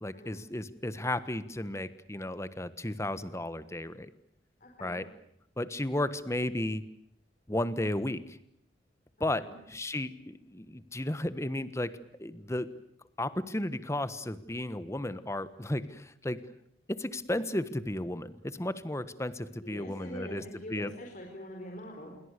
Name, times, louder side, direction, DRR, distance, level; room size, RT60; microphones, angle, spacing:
voice 1, 0.0-4.1 4.8-5.0 5.6-6.8 7.5-8.2 9.2-12.7 13.2-16.5 16.9-20.4 20.7-20.9, left 1 dB, 15° left, 14 dB, 1.3 m, -34 dB
voice 2, 4.6-5.0 9.2-9.6 19.6-22.2, equal, 45° left, 2 dB, 4.7 m, -44 dB
28.0 x 23.0 x 6.7 m, 0.73 s
head